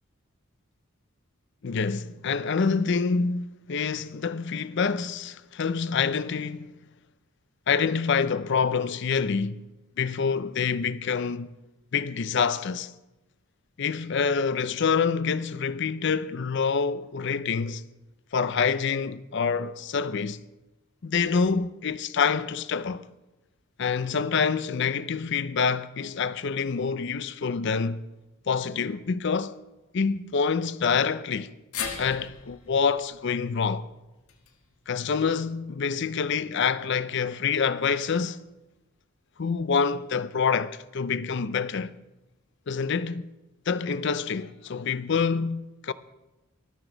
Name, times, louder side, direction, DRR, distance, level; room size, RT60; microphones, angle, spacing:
voice 1, 1.6-6.7 7.7-9.6 10.0-11.5 11.9-12.9 13.8-17.8 18.3-20.4 21.0-23.0 23.8-28.0 28.5-29.5 29.9-31.5 32.0-33.9 34.9-38.4 39.4-41.9 42.7-43.3 43.7-45.9, left 5 dB, 55° left, 0.5 m, -26 dB
sound 1, 31.7-36.0 36.3-36.4 37.6-37.7, left 7 dB, 90° left, 1.6 m, -40 dB
19.5 x 12.5 x 3.9 m
head